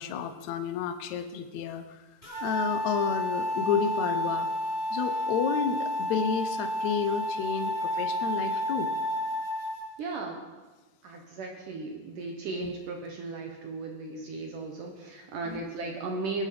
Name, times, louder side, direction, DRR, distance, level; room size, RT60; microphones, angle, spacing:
voice 1, 0.0-2.1 2.4-4.5 4.9-8.9 12.6-12.7 15.5-15.6, left 7 dB, 90° left, 8 dB, 1.6 m, -31 dB
sound 1, 2.2-9.8, equal, 10° left, 5.1 m, -30 dB
voice 2, 10.0-10.5 11.0-16.4, right 3 dB, 65° right, 2 dB, 2.5 m, -36 dB
20.5 x 10.5 x 5.1 m, 1.2 s
omnidirectional pair, 4.6 m